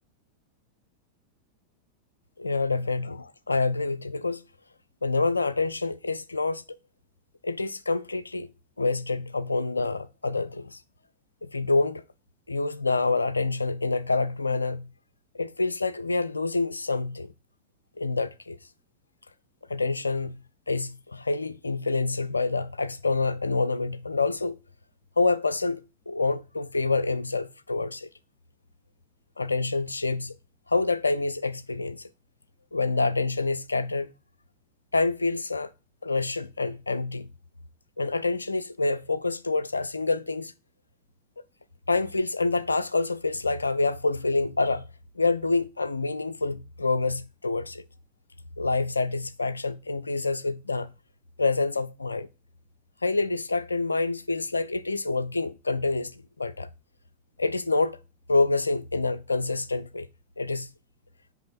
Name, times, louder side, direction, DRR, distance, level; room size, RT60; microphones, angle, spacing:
voice 1, 2.4-4.4 5.0-6.6 7.4-8.5 8.8-10.8 11.4-12.0 12.5-14.9 15.3-17.3 18.0-18.6 19.7-20.4 20.7-24.6 25.2-25.8 26.1-28.1 29.4-30.3 30.7-32.1 32.7-34.1 34.9-35.7 36.0-37.3 38.0-40.5 41.9-44.8 45.2-47.8 48.6-50.9 51.4-52.3 53.0-56.7 57.4-58.0 58.3-60.1 60.4-60.7, left 3 dB, 80° left, 0.3 m, -27 dB
6.0 x 5.2 x 4.3 m
figure-of-eight pair, 90°, 0 cm